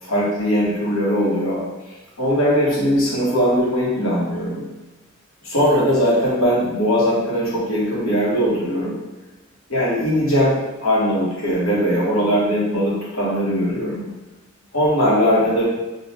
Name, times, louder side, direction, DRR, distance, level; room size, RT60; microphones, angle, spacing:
voice 1, 0.0-4.6 5.4-9.0 9.7-14.0 14.7-15.6, equal, 90° left, -6 dB, 1.3 m, -20 dB
3.8 x 2.4 x 4.3 m, 1.1 s
head